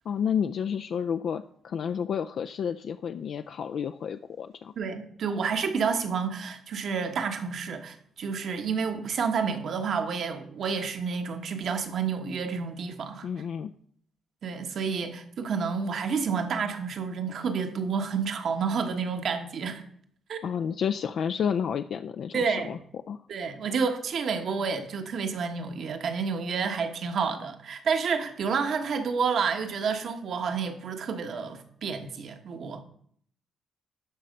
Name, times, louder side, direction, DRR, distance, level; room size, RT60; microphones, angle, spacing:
voice 1, 0.1-4.7 13.2-13.7 20.4-22.8 23.1-23.2, left 7 dB, 65° left, 0.3 m, -30 dB
voice 2, 4.8-13.3 14.4-19.8 20.3-20.4 22.3-22.8 23.3-32.8, right 5 dB, 65° right, 1.2 m, -29 dB
12.5 x 4.3 x 5.2 m
cardioid pair, 85°, 0 cm